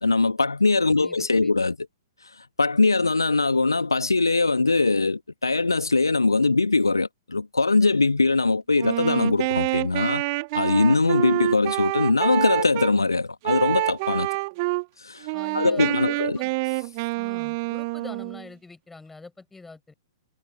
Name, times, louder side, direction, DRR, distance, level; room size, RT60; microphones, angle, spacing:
voice 1, 0.0-1.8 2.6-10.2 10.5-14.3 15.0-15.3 15.5-16.4, left 3 dB, 75° left, 1.8 m, -21 dB
voice 2, 0.9-1.5 15.3-16.5 17.2-19.9, left 3 dB, 5° left, 7.5 m, -44 dB
Wind instrument woodwind instrument, 8.8-12.9 13.4-14.8 15.2-18.5, right 26 dB, 40° right, 3.4 m, -27 dB
figure-of-eight pair, 110°, 2 cm